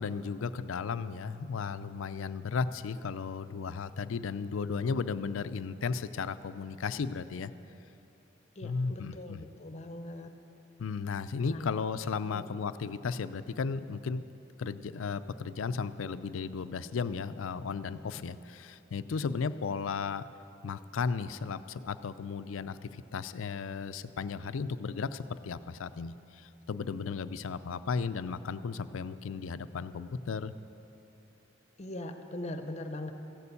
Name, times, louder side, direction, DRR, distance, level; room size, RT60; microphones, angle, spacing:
voice 1, 0.0-7.5 8.6-9.5 10.8-14.2 14.6-20.2 20.6-30.5, left 5 dB, 80° left, 13 dB, 0.4 m, -35 dB
voice 2, 8.6-10.3 11.5-11.7 12.2-12.5 31.8-33.1, left 1 dB, 35° left, 7 dB, 0.7 m, -41 dB
15.0 x 6.9 x 8.3 m, 3.0 s
head